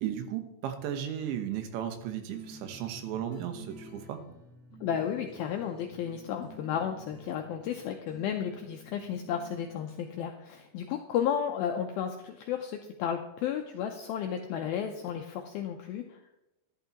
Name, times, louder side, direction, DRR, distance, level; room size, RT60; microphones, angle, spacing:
voice 1, 0.0-4.2, right 10 dB, 90° right, 7 dB, 3.4 m, -35 dB
sound 1, 2.3-10.7, right 1 dB, 60° right, 0.7 m, -52 dB
voice 2, 4.8-16.2, left 8 dB, 90° left, 3 dB, 2.1 m, -33 dB
13.5 x 11.5 x 3.0 m, 0.86 s
omnidirectional pair, 5.1 m